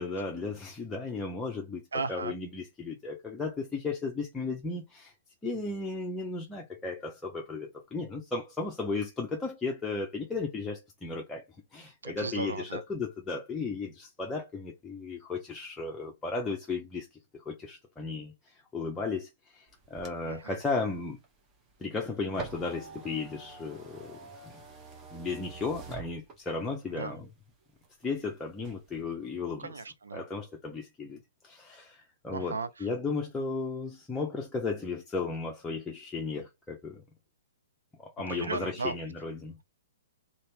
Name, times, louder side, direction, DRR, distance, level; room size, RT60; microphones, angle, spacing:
voice 1, 0.0-5.1 5.4-11.5 11.7-17.1 17.3-18.3 18.7-21.2 21.8-24.5 25.1-27.3 28.0-29.8 30.1-37.0 38.0-39.6, left 4 dB, 10° left, 0.6 m, -35 dB
voice 2, 1.9-2.3 12.0-12.8 20.2-20.6 26.9-27.1 29.6-30.2 32.3-32.7 38.3-38.9, right 4 dB, 85° right, 0.6 m, -35 dB
sound 1, 19.7-26.7 27.2-28.2 28.5-29.0, right 3 dB, 25° right, 0.9 m, -47 dB
2.9 x 2.8 x 3.2 m
hypercardioid pair, 135°, 0 cm